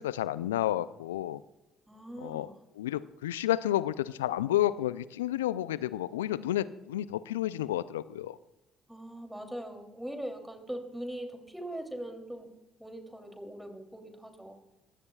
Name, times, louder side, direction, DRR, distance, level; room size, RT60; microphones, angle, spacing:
voice 1, 0.0-1.4 2.2-8.4, left 13 dB, 85° left, 18 dB, 0.4 m, -31 dB
voice 2, 1.9-2.5 8.9-12.5 12.8-14.6, right 1 dB, 5° right, 4 dB, 3.0 m, -41 dB
22.5 x 16.5 x 2.4 m, 1.0 s
hypercardioid pair, 50°, 0 cm